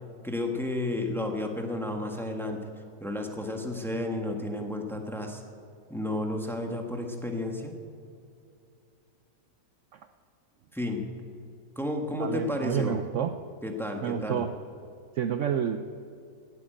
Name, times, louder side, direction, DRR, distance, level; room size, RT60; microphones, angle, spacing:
voice 1, 0.2-2.6 3.0-5.4 5.9-7.7 10.7-11.1 11.8-13.0 13.6-14.4, left 1 dB, ahead, 2 dB, 1.3 m, -32 dB
voice 2, 12.2-13.4 14.0-14.5 15.2-15.8, right 8 dB, 65° right, 9 dB, 0.8 m, -29 dB
16.0 x 9.6 x 8.8 m, 2.5 s
omnidirectional pair, 1.6 m